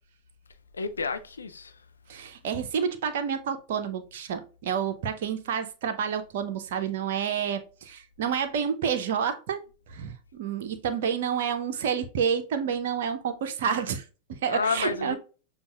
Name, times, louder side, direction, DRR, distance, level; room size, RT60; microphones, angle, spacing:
voice 1, 0.7-1.8 14.5-15.2, left 4 dB, 75° left, 0.5 m, -30 dB
voice 2, 2.1-9.6 9.9-14.0 14.4-15.2, right 7 dB, 55° right, 0.6 m, -29 dB
6.9 x 2.3 x 2.3 m
figure-of-eight pair, 90°, 0 cm